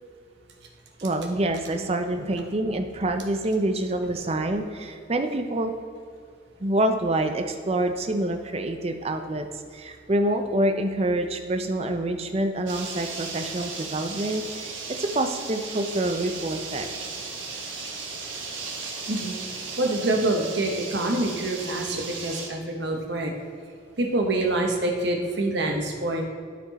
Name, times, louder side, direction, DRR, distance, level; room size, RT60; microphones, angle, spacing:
voice 1, 1.0-5.7 6.6-9.5 9.7-16.9, right 1 dB, 30° right, 6 dB, 0.5 m, -26 dB
sound 1, 12.7-22.5, right 4 dB, 90° right, 1.3 m, -36 dB
voice 2, 19.8-23.3 24.0-26.3, right 2 dB, 60° right, 2 dB, 1.0 m, -26 dB
12.0 x 4.4 x 4.1 m, 2.3 s
head